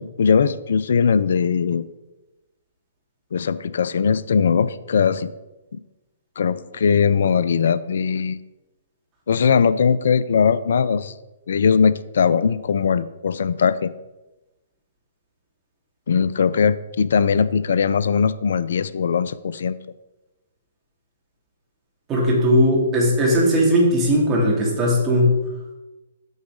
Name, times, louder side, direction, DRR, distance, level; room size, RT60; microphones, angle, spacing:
voice 1, 0.0-1.9 3.3-5.3 5.7-5.8 6.4-8.4 9.3-11.1 11.5-13.9 16.1-19.8, left 6 dB, 65° left, 16 dB, 0.4 m, -20 dB
voice 2, 22.1-25.4, equal, 25° right, -3 dB, 2.9 m, -18 dB
8.0 x 4.8 x 5.0 m, 1.0 s
figure-of-eight pair, 120°, 0 cm